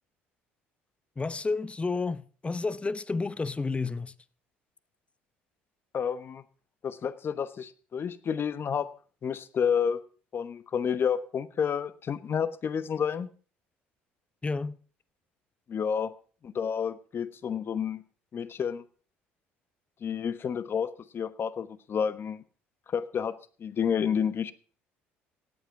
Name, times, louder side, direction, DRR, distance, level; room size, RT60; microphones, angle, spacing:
voice 1, 1.2-4.1 14.4-14.8, left 3 dB, 20° left, 0.8 m, -31 dB
voice 2, 5.9-6.4 6.8-8.9 9.2-10.0 10.3-13.3 15.7-16.1 16.4-18.0 18.3-18.8 20.0-22.4 22.9-24.5, left 7 dB, 45° left, 1.1 m, -30 dB
17.0 x 8.3 x 5.9 m
hypercardioid pair, 60°, 6 cm